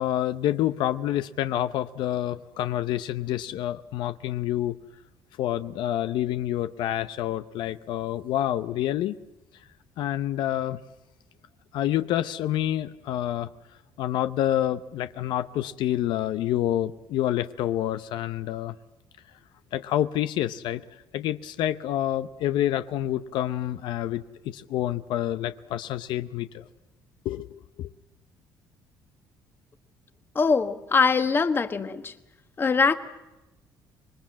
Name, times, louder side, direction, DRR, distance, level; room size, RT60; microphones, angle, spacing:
voice 1, 0.0-4.8 5.4-9.2 10.0-10.8 11.7-13.5 14.0-18.7 19.7-20.8 21.1-26.6 27.2-27.5 27.8-27.9, left 12 dB, 75° left, 11 dB, 0.7 m, -28 dB
voice 2, 30.3-32.1 32.6-33.0, left 5 dB, 30° left, 9 dB, 1.3 m, -22 dB
26.0 x 21.0 x 7.5 m, 1.0 s
cardioid pair, 125°, 8 cm